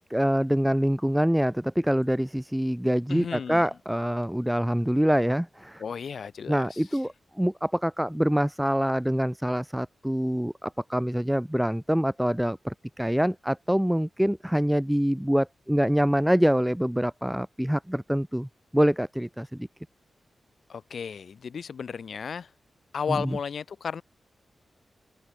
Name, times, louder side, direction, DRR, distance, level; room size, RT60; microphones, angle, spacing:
voice 1, 0.0-5.8 6.5-18.5 18.7-19.7 23.1-23.4, equal, 5° right, 2.6 m, -25 dB
voice 2, 3.1-3.6 5.8-6.8 20.7-22.5 22.9-24.0, left 6 dB, 60° left, 3.4 m, -34 dB
open air
wide cardioid pair, 175°, 0 cm